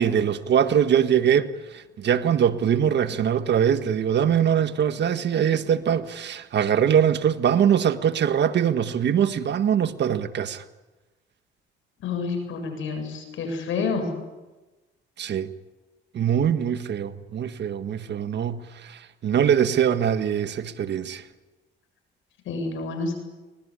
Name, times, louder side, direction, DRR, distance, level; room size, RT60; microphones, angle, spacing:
voice 1, 0.0-10.6 15.2-15.5 16.1-21.2, right 8 dB, 60° right, 1.6 m, -22 dB
voice 2, 12.0-14.0 22.5-23.1, left 4 dB, 80° left, 7.9 m, -28 dB
24.5 x 20.0 x 10.0 m
cardioid pair, 90°, 20 cm